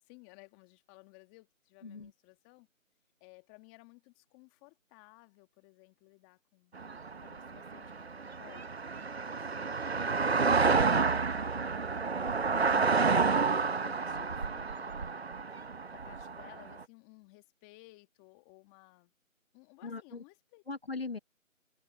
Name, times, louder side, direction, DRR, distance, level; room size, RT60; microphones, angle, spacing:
voice 1, 0.0-2.7 3.2-6.7 7.2-12.4 13.1-15.3 15.9-19.1 19.5-20.6, left 26 dB, 5° left, 1.7 m, -58 dB
sound 1, 6.8-16.8, right 4 dB, 50° right, 0.8 m, -30 dB
voice 2, 12.5-12.9 19.8-20.2 20.7-21.2, left 4 dB, 50° left, 1.2 m, -40 dB
figure-of-eight pair, 160°, 40 cm